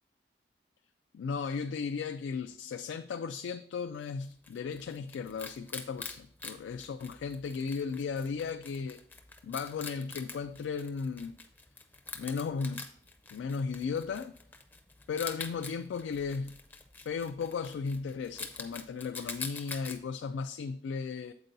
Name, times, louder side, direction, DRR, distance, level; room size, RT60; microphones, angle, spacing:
voice 1, 1.1-9.0 9.4-11.3 12.1-12.9 13.3-14.3 15.1-16.6 17.0-21.3, left 5 dB, 90° left, 8 dB, 0.3 m, -35 dB
Wild animals, 4.0-20.0, left 4 dB, 10° left, 0.4 m, -46 dB
7.8 x 4.5 x 3.9 m, 0.63 s
head